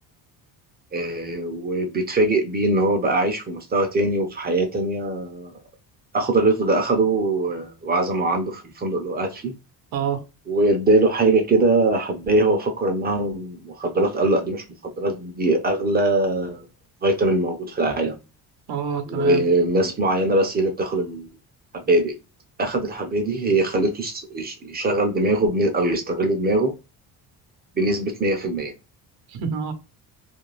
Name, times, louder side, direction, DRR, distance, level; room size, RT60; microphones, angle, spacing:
voice 1, 0.9-5.6 6.1-9.5 10.5-16.7 17.0-18.2 19.1-21.3 21.7-22.1 22.6-26.7 27.8-28.7, right 2 dB, 25° right, 0.5 m, -22 dB
voice 2, 9.9-10.2 18.7-19.4 29.3-29.7, right 7 dB, 70° right, 0.7 m, -27 dB
2.5 x 2.1 x 3.1 m
cardioid pair, 145°, 39 cm